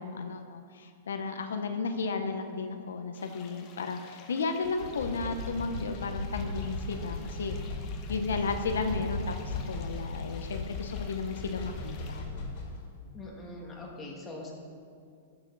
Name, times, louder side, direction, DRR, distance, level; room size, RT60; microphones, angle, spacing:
voice 1, 0.0-7.6 8.1-12.2, left 4 dB, 90° left, 6 dB, 0.8 m, -34 dB
sound 1, 3.1-12.2, left 6 dB, 35° left, 1.0 m, -54 dB
sound 2, 4.6-12.8, left 2 dB, 50° left, 2.6 m, -37 dB
voice 2, 13.1-14.5, left 2 dB, 15° left, -2 dB, 2.0 m, -42 dB
13.5 x 7.0 x 3.9 m, 2.3 s
hypercardioid pair, 140°, 0 cm